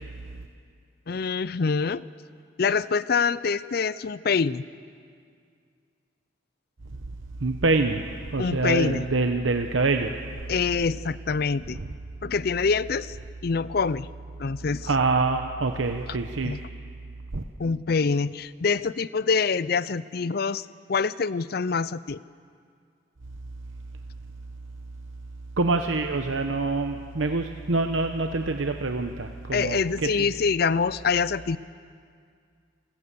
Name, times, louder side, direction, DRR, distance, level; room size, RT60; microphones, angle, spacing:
voice 1, 1.1-2.0 2.6-4.6 8.4-9.1 10.5-11.8 12.2-13.2 13.4-14.1 14.4-14.9 16.1-16.2 16.4-16.6 17.6-22.2 29.5-31.6, left 5 dB, 50° left, 18 dB, 0.5 m, -25 dB
voice 2, 7.4-8.0 8.3-10.2 14.9-16.6 17.3-17.4 25.6-30.3, right 3 dB, 85° right, 6 dB, 0.9 m, -25 dB
27.0 x 16.0 x 6.9 m, 2.2 s
head